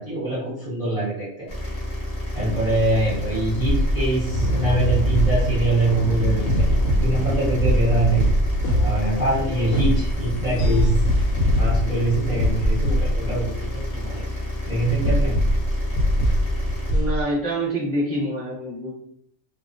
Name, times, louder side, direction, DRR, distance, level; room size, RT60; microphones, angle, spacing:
voice 1, 0.0-1.5 2.3-6.7 7.0-8.3 8.8-11.0 11.6-14.3 14.7-15.4, right 2 dB, 40° right, -9 dB, 0.6 m, -24 dB
sound 1, 1.5-16.9, left 1 dB, 50° left, 0.4 m, -30 dB
sound 2, 3.1-6.1 6.4-13.6 14.3-14.4 15.0-17.2, equal, 85° left, 1.0 m, -23 dB
sound 3, 4.3-16.9, right 1 dB, 65° left, 0.9 m, -29 dB
voice 2, 16.9-18.9, right 1 dB, 15° left, -8 dB, 0.7 m, -26 dB
2.3 x 2.2 x 2.4 m, 0.67 s
omnidirectional pair, 1.4 m